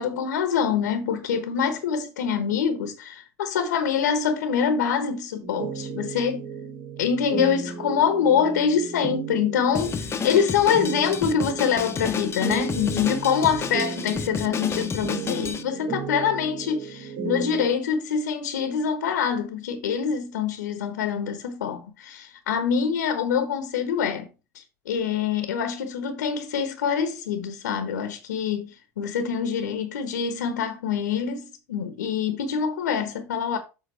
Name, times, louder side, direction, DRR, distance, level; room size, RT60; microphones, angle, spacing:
voice 1, 0.0-6.5 7.0-24.3 24.5-33.6, left 7 dB, 90° left, 1.0 m, -25 dB
sound 1, 5.4-17.7, right 6 dB, 60° right, 3.1 m, -35 dB
Drum kit, 9.7-15.6, left 6 dB, 30° left, 0.9 m, -31 dB
7.7 x 3.9 x 5.5 m
hypercardioid pair, 85°, 9 cm